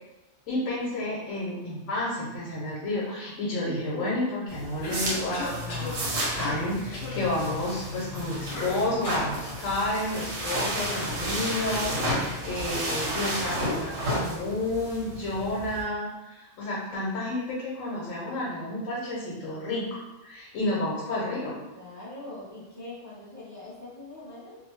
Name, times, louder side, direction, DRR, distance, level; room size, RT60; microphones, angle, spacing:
voice 1, 0.5-6.0 6.3-21.6, left 1 dB, 90° left, -5 dB, 1.0 m, -31 dB
sound 1, 4.5-15.8, equal, 85° right, 1.1 m, -32 dB
Cough, 4.8-6.0 6.4-6.7 6.9-7.2 8.5-9.4, left 2 dB, 60° left, 0.7 m, -36 dB
voice 2, 21.7-24.6, left 2 dB, 15° left, -10 dB, 0.8 m, -42 dB
2.6 x 2.0 x 3.0 m, 1.0 s
omnidirectional pair, 1.3 m